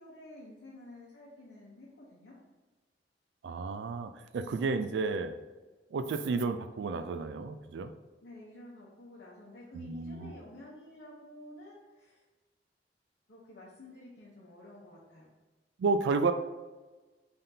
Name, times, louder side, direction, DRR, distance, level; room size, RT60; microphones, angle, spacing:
voice 1, 0.0-2.4 8.2-12.2 13.3-15.3, left 1 dB, 70° left, -6 dB, 0.8 m, -51 dB
voice 2, 3.4-5.3 5.9-7.9 9.7-10.3 15.8-16.3, right 4 dB, 85° right, 10 dB, 0.3 m, -31 dB
3.8 x 3.5 x 2.7 m, 1.2 s
head